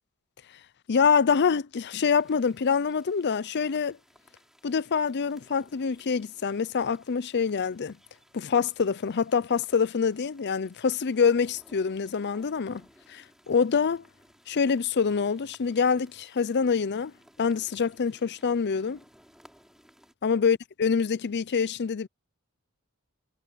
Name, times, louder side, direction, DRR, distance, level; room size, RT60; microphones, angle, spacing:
voice 1, 0.9-4.0 4.6-8.0 8.3-12.8 13.1-14.0 14.5-17.1 17.4-19.0 20.2-22.1, left 6 dB, 50° left, 0.5 m, -25 dB
sound 1, 2.0-20.1, equal, ahead, 4.1 m, -60 dB
head